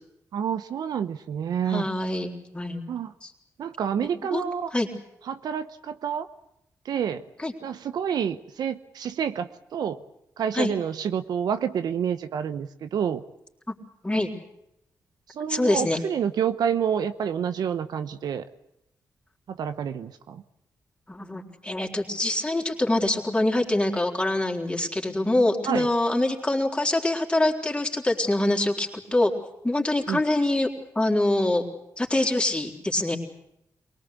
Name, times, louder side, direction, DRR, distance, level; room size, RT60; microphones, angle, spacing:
voice 1, 0.3-1.9 2.9-3.1 3.6-4.7 5.3-6.3 6.8-7.2 7.6-10.0 10.4-13.2 15.4-18.4 19.5-20.4 25.6-25.9 30.1-30.2, right 8 dB, 80° right, 11 dB, 0.9 m, -28 dB
voice 2, 1.7-2.8 3.2-3.3 4.3-4.4 4.7-4.9 7.4-7.5 10.5-10.7 13.7-13.8 14.0-14.3 15.5-16.0 21.1-29.3 29.6-30.7 31.0-31.6 32.0-33.2, left 1 dB, 15° left, 1 dB, 3.9 m, -24 dB
24.0 x 18.5 x 8.3 m, 0.81 s
cardioid pair, 70°, 7 cm